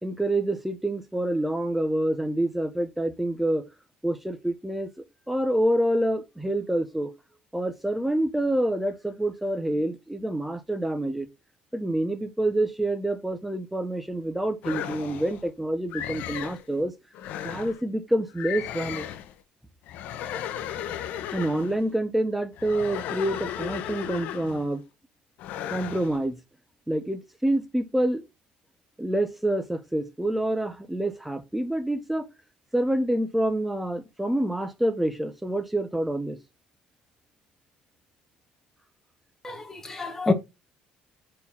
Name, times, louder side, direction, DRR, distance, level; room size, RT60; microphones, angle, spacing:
voice 1, 0.0-3.6 4.0-4.9 5.3-7.1 7.5-11.3 11.7-16.9 17.4-19.1 21.3-24.8 25.7-26.4 26.9-28.2 29.0-32.3 32.7-36.4, right 1 dB, 5° right, 0.9 m, -27 dB
sound 1, 14.6-15.4 15.9-16.6 17.1-17.8 18.4-19.3 19.9-21.8 22.6-24.7 25.4-26.2, left 10 dB, 70° left, 0.8 m, -35 dB
voice 2, 39.4-40.3, left 3 dB, 15° left, 1.3 m, -27 dB
4.4 x 4.4 x 5.4 m
cardioid pair, 140°, 3 cm